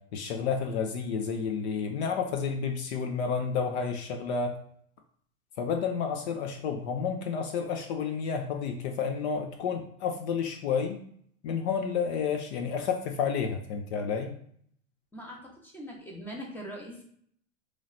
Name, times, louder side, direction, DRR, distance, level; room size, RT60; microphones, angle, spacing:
voice 1, 0.1-4.5 5.6-11.0 11.4-14.3, left 6 dB, 55° left, 4 dB, 0.7 m, -30 dB
voice 2, 15.1-17.0, equal, 5° left, -2 dB, 0.8 m, -41 dB
3.1 x 3.0 x 4.0 m, 0.63 s
hypercardioid pair, 135°, 39 cm